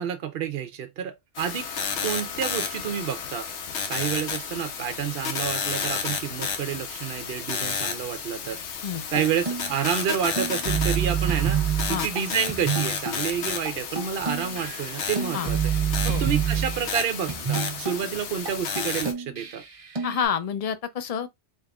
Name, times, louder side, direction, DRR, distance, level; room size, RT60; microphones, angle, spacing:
voice 1, 0.0-1.7 2.0-3.5 3.9-8.6 9.1-15.6 16.0-19.6, right 8 dB, 60° right, 0.8 m, -29 dB
sound 1, 1.3-19.1, left 6 dB, 85° left, 1.1 m, -32 dB
sound 2, 9.2-13.3 13.7-13.8 14.0-17.0 17.3-18.0 18.5-18.6 18.8-20.2, right 7 dB, 30° right, 1.0 m, -28 dB
voice 2, 20.0-21.3, left 7 dB, 45° left, 0.5 m, -28 dB
4.0 x 3.6 x 2.3 m
omnidirectional pair, 1.2 m